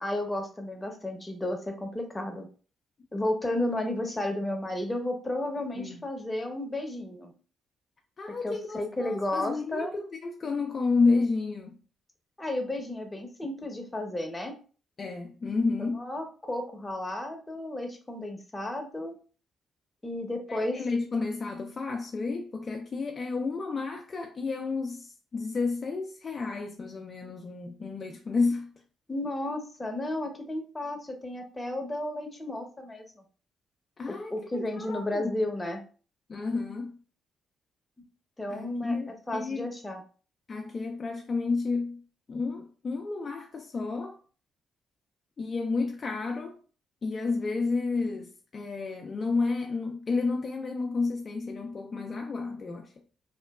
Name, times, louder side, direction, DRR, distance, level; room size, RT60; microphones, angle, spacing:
voice 1, 0.0-2.5 3.1-7.3 8.4-9.9 12.4-14.5 15.8-19.2 20.0-20.8 29.1-33.0 34.1-35.8 38.4-40.0, left 1 dB, 20° left, 0.8 m, -33 dB
voice 2, 8.2-11.8 15.0-16.1 20.5-28.7 34.0-35.4 36.3-37.0 38.5-39.7 40.5-42.0 42.3-44.2 45.4-46.6 47.0-52.9, left 4 dB, 45° left, 0.4 m, -31 dB
2.9 x 2.2 x 2.3 m
supercardioid pair, 55°, 0 cm